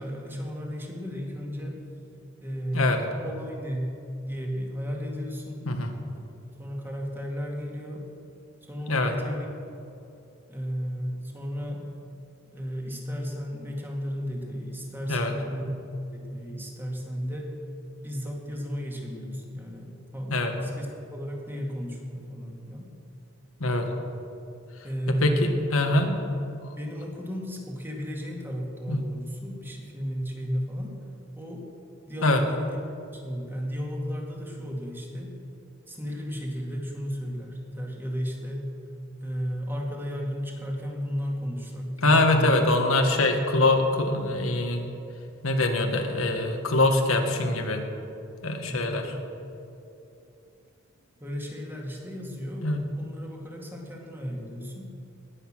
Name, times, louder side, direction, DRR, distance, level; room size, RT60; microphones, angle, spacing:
voice 1, 0.0-1.9 2.4-3.9 4.2-5.7 6.6-8.1 8.7-9.5 10.5-11.8 12.5-17.5 18.0-22.9 24.8-25.9 26.7-31.0 31.4-31.7 32.1-32.8 33.1-35.4 35.9-38.7 39.2-42.6 48.7-49.0 51.2-54.9, equal, 10° right, 0 dB, 2.0 m, -34 dB
voice 2, 25.2-26.2 28.9-29.0 32.2-32.4 42.0-44.9 45.4-47.8 48.4-49.0 52.6-52.8, left 2 dB, 90° left, 4 dB, 1.6 m, -23 dB
19.5 x 8.2 x 6.2 m, 2.8 s
head